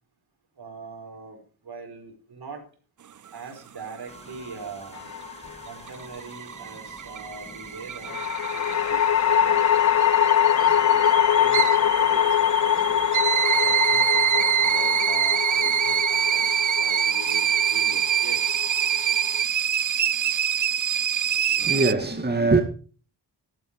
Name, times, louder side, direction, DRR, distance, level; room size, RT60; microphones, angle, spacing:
voice 1, 0.6-2.6 3.3-5.1 5.7-9.0 9.2-9.6 10.5-13.1 13.5-18.7, right 4 dB, 70° right, 5.2 m, -42 dB
sound 1, 4.1-14.8, equal, 15° left, 2.6 m, -47 dB
sound 2, 5.0-5.7 8.1-19.4, left 9 dB, 45° left, 0.5 m, -23 dB
sound 3, 5.7-21.9, right 9 dB, 50° right, 0.6 m, -25 dB
voice 2, 21.6-22.6, right 3 dB, 25° right, 2.2 m, -22 dB
13.0 x 12.0 x 4.8 m
cardioid pair, 50°, 41 cm